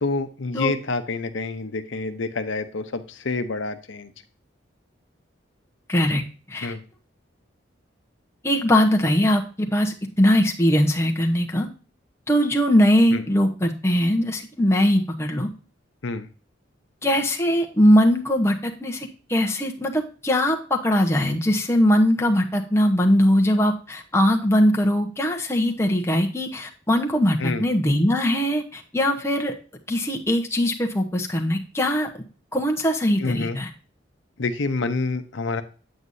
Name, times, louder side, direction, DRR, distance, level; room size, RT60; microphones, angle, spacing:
voice 1, 0.0-4.1 6.6-6.8 13.1-13.2 16.0-16.3 27.4-27.7 33.2-33.6 34.4-35.6, left 3 dB, 75° left, 8 dB, 0.8 m, -27 dB
voice 2, 5.9-6.2 6.5-6.8 8.4-11.7 12.3-15.5 17.0-29.5 29.9-32.1 32.5-33.7, equal, 15° left, 2 dB, 0.9 m, -21 dB
8.5 x 7.9 x 2.6 m, 0.37 s
head